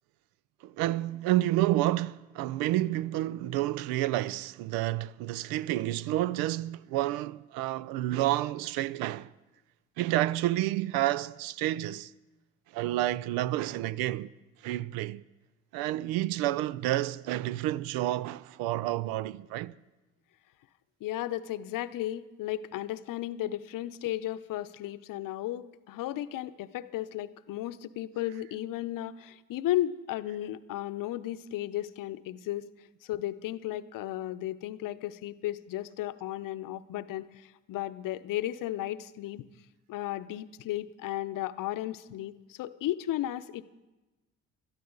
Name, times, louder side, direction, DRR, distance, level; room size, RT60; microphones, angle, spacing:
voice 1, 0.6-9.3 10.0-12.1 12.7-14.3 14.6-15.2 15.7-19.7, right 15 dB, 65° right, 0.6 m, -29 dB
voice 2, 21.0-32.7 33.0-39.4 39.9-43.6, left 14 dB, 55° left, 0.8 m, -34 dB
21.5 x 12.5 x 3.9 m
hypercardioid pair, 55°, 39 cm